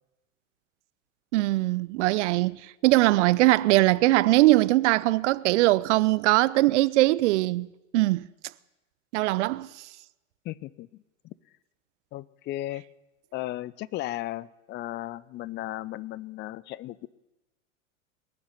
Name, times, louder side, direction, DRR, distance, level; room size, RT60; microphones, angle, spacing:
voice 1, 1.3-2.6 2.8-7.7 7.9-8.3 9.1-9.7, right 19 dB, 65° right, 0.6 m, -21 dB
voice 2, 10.4-11.3 12.1-12.8 13.3-17.1, left 15 dB, 30° left, 0.5 m, -35 dB
19.5 x 7.4 x 9.9 m
hypercardioid pair, 95°, 39 cm